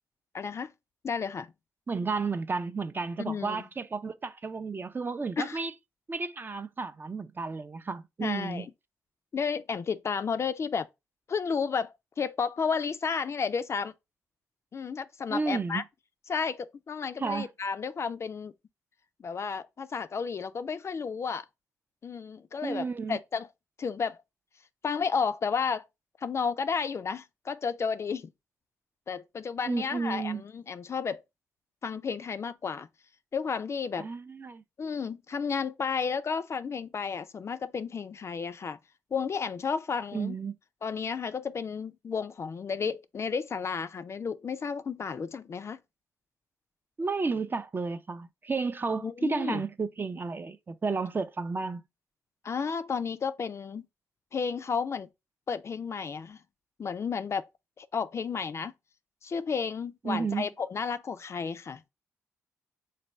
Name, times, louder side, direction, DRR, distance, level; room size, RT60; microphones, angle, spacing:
voice 1, 0.3-0.7 1.0-1.5 3.3-3.6 5.4-5.6 8.2-8.7 9.3-10.9 11.3-13.9 14.7-15.8 16.3-18.5 19.2-21.5 22.0-23.5 23.8-24.2 24.8-25.9 26.2-28.3 29.1-31.2 31.8-32.9 33.3-34.1 34.8-38.8 39.1-40.4 40.8-45.8 49.0-49.6 52.4-53.9 54.3-55.1 55.5-56.4 56.8-57.5 57.8-58.7 59.2-61.8, left 6 dB, 45° left, 0.3 m, -32 dB
voice 2, 1.9-5.7 6.1-8.7 15.3-15.8 17.2-17.5 22.6-23.2 29.7-30.4 34.0-34.6 40.1-40.5 47.0-51.8 60.0-60.5, right 4 dB, 30° right, 0.4 m, -32 dB
3.3 x 2.2 x 4.1 m
supercardioid pair, 50°, 7 cm